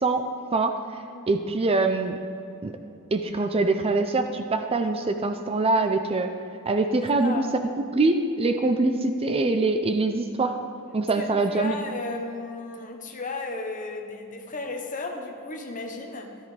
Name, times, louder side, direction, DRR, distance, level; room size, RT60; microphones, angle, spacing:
voice 1, 0.0-2.2 2.6-2.8 3.1-6.3 6.7-7.4 7.9-10.6 10.9-11.8, right 3 dB, 25° right, 6 dB, 0.5 m, -24 dB
voice 2, 7.0-7.5 11.1-16.4, left 3 dB, 35° left, 3 dB, 1.1 m, -35 dB
14.0 x 12.5 x 3.3 m, 2.6 s
head